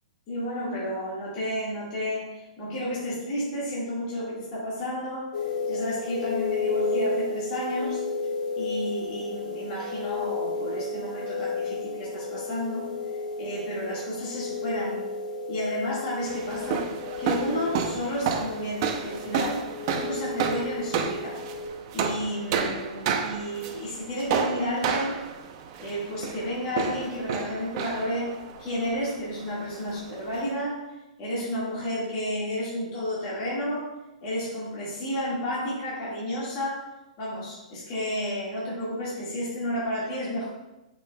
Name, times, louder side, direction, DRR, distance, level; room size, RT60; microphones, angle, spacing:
voice 1, 0.3-8.0 8.6-12.9 13.4-15.0 15.5-16.9 17.2-19.7 19.9-21.4 21.9-25.2 25.8-28.3 28.6-30.9 31.2-33.9 34.2-36.9 37.2-40.5, left 1 dB, 30° left, -8 dB, 1.9 m, -31 dB
sound 1, 5.3-21.7, left 4 dB, 80° left, 1.3 m, -33 dB
sound 2, 16.3-30.5, right 6 dB, 35° right, 0.6 m, -31 dB
8.8 x 5.1 x 2.3 m, 0.98 s
hypercardioid pair, 165°, 4 cm